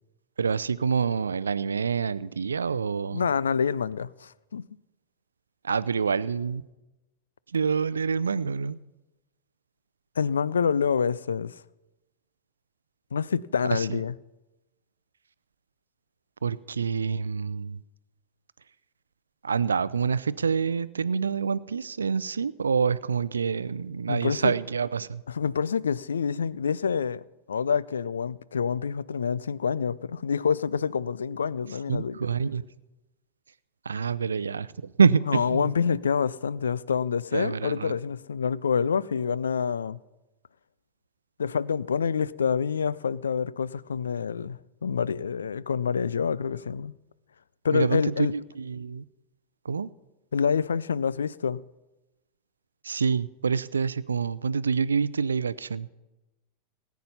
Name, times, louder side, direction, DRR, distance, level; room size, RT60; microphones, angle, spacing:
voice 1, 0.4-3.3 5.6-6.6 7.5-8.8 13.7-14.0 16.4-17.8 19.4-25.2 31.9-32.6 33.8-35.7 37.3-37.9 47.7-49.0 49.6-49.9 52.8-55.9, right 5 dB, 70° right, 0.5 m, -27 dB
voice 2, 3.1-4.6 10.2-11.6 13.1-14.1 24.1-24.5 25.3-32.1 35.3-40.0 41.4-46.9 47.6-48.3 50.3-51.6, left 6 dB, 70° left, 0.4 m, -27 dB
18.5 x 9.3 x 5.5 m
figure-of-eight pair, 90°, 0 cm